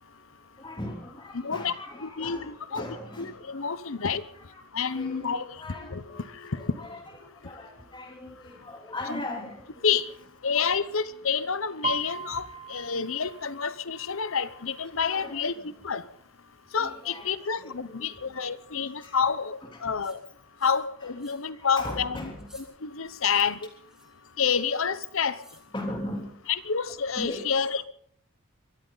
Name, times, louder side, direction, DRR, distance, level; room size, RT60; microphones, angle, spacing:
voice 1, 0.5-3.7 4.0-4.1 4.5-6.2 6.5-7.0 7.3-9.8 10.5-10.7 14.9-15.5 16.8-18.4 18.7-19.2 19.6-19.9 21.5-22.3 25.7-26.5 27.2-27.4, left 1 dB, 20° left, 3.3 m, -39 dB
voice 2, 1.3-1.7 2.0-2.8 3.2-4.2 4.7-6.7 9.1-9.2 9.8-10.1 10.4-15.5 15.8-16.0 16.7-20.2 20.6-22.3 22.8-23.6 24.4-25.4 26.5-27.9, left 6 dB, 70° left, 0.9 m, -28 dB
Piano, 11.8-15.5 15.8-16.2 16.6-17.2 17.8-17.9 18.1-19.2 19.5-19.6, right 5 dB, 30° right, 1.0 m, -39 dB
sound 1, 20.0-20.2 20.6-20.9 21.2-21.5 21.8-22.0 22.4-22.7 23.2-23.4 23.9-24.2 25.3-25.7, right 1 dB, 5° right, 2.5 m, -55 dB
23.5 x 14.5 x 4.0 m
head